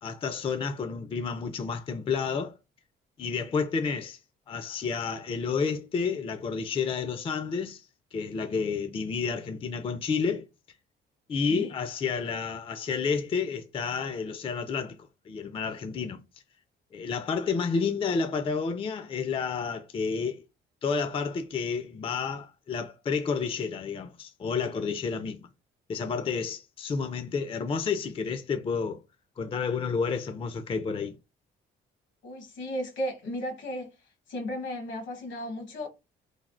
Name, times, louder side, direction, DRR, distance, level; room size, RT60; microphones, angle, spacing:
voice 1, 0.0-2.5 3.2-4.2 4.5-7.9 8.1-10.5 11.3-15.0 15.3-16.2 16.9-20.4 20.8-25.5 25.9-29.0 29.4-31.2, left 5 dB, 30° left, 0.4 m, -30 dB
voice 2, 32.2-33.9 34.3-35.9, left 1 dB, 75° left, 1.1 m, -34 dB
3.3 x 2.1 x 2.4 m
cardioid pair, 90°, 20 cm